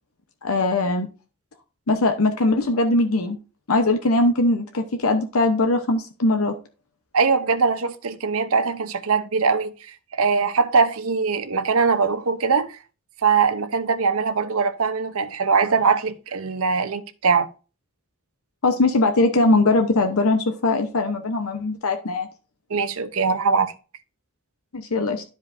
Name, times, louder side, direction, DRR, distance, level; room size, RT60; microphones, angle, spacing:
voice 1, 0.4-1.1 1.9-3.4 3.7-6.5 18.6-22.3 24.7-25.2, left 2 dB, 85° left, 0.9 m, -20 dB
voice 2, 7.1-9.7 10.2-12.8 13.2-17.5 22.7-23.7, right 5 dB, 85° right, 0.7 m, -21 dB
12.0 x 5.2 x 2.6 m
head